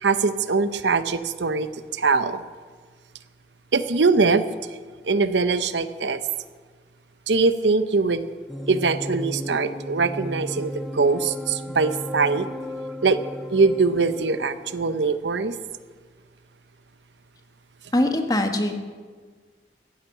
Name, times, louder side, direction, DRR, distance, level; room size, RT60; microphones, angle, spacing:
voice 1, 0.0-2.4 3.7-4.4 5.0-6.2 7.3-8.3 8.7-12.5 13.0-13.2 13.5-15.5, right 4 dB, 85° right, 12 dB, 0.8 m, -22 dB
sound 1, 8.5-15.0, equal, ahead, 0.7 m, -35 dB
voice 2, 17.9-18.8, left 1 dB, 20° left, 5 dB, 1.4 m, -22 dB
15.0 x 10.5 x 8.0 m, 1.5 s
head